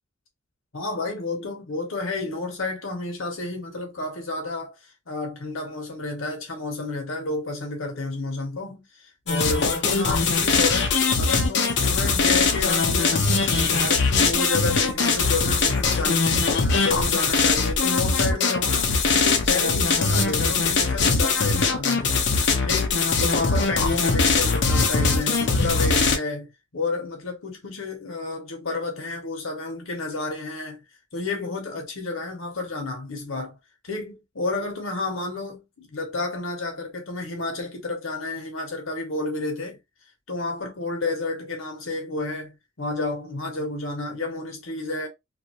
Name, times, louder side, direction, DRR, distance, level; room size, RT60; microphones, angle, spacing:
voice 1, 0.7-22.3 22.6-26.5 26.7-30.8 31.1-33.6 33.8-39.8 40.3-45.1, left 3 dB, 85° left, 1.0 m, -31 dB
sound 1, 9.3-26.2, left 4 dB, 55° left, 0.6 m, -21 dB
2.6 x 2.5 x 2.9 m
head